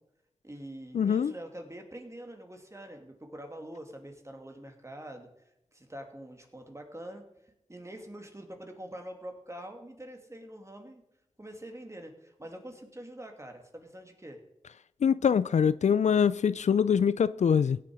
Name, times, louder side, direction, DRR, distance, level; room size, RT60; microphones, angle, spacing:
voice 1, 0.4-5.3 5.7-7.2 7.7-11.0 11.4-14.4, right 1 dB, 25° right, 2.6 m, -45 dB
voice 2, 0.9-1.3 15.0-17.8, left 7 dB, 80° left, 0.4 m, -24 dB
17.0 x 6.8 x 4.9 m
cardioid pair, 45°, 12 cm